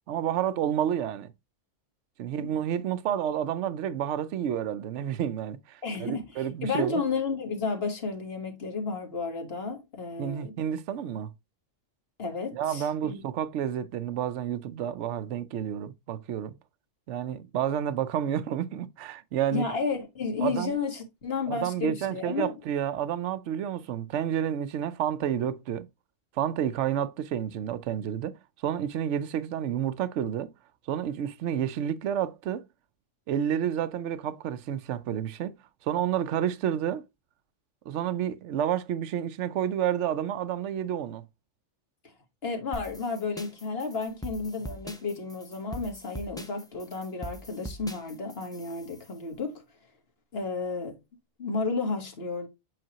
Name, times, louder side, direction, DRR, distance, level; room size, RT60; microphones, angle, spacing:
voice 1, 0.1-1.3 2.2-7.0 10.2-11.3 12.5-16.5 17.1-19.7 20.4-20.8 21.5-25.9 26.4-30.5 30.9-32.6 33.3-35.6 35.8-37.0 37.9-41.2, right 9 dB, 70° right, 0.9 m, -30 dB
voice 2, 5.8-10.5 12.2-13.2 19.5-22.5 42.4-49.6 50.3-51.0 51.4-52.5, left 4 dB, 55° left, 1.7 m, -32 dB
sound 1, 42.7-49.1, right 1 dB, 5° left, 0.6 m, -42 dB
7.8 x 4.3 x 2.9 m
omnidirectional pair, 1.3 m